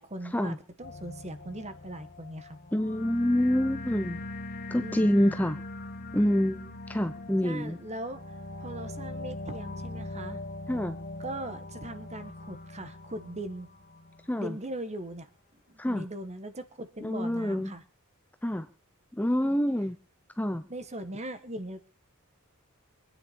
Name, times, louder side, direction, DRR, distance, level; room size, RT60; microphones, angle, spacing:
voice 1, 0.0-2.6 4.8-5.1 7.4-8.2 8.6-10.4 11.2-13.7 14.4-15.3 15.7-17.8 19.4-19.5 20.7-21.9, right 1 dB, 30° right, 10 dB, 1.7 m, -40 dB
sound 1, 0.8-14.4, left 2 dB, 45° left, 1.3 m, -41 dB
voice 2, 2.7-4.2 4.7-5.6 6.1-7.8 10.7-11.0 14.3-14.6 15.8-16.0 17.0-17.7 18.4-18.7 19.1-20.0 20.4-20.6, equal, 10° left, 9 dB, 0.7 m, -27 dB
24.5 x 9.8 x 4.3 m, 0.34 s
head